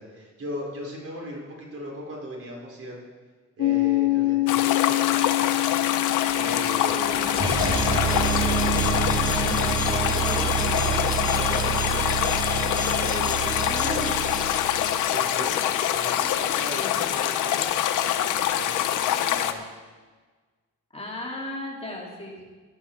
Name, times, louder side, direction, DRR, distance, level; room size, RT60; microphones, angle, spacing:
voice 1, 0.0-3.0 3.6-5.2 6.3-7.3 11.3-12.2 12.9-13.8 15.1-17.6 18.4-19.6, equal, 50° right, -2 dB, 4.7 m, -38 dB
Piano, 3.6-10.8, left 19 dB, 55° left, 1.2 m, -27 dB
sound 1, 4.5-19.5, left 11 dB, 90° left, 0.9 m, -25 dB
sound 2, 5.2-16.0, right 4 dB, 15° right, 2.4 m, -28 dB
voice 2, 7.1-9.1 9.4-11.1 13.6-14.3 16.8-17.2 20.9-22.4, left 1 dB, 20° left, -2 dB, 3.0 m, -37 dB
14.5 x 11.5 x 4.7 m, 1.4 s
cardioid pair, 90°, 30 cm